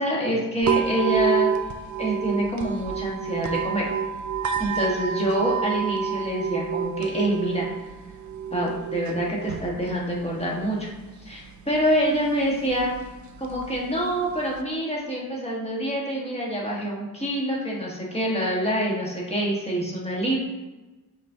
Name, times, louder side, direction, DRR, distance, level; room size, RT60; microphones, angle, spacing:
voice 1, 0.0-1.5 2.0-3.9 4.6-7.7 8.5-10.9 11.2-12.9 13.4-20.4, equal, 15° left, -4 dB, 1.5 m, -26 dB
sound 1, 0.6-14.6, right 7 dB, 55° right, 0.5 m, -30 dB
5.2 x 3.6 x 2.8 m, 1.2 s
cardioid pair, 65°, 37 cm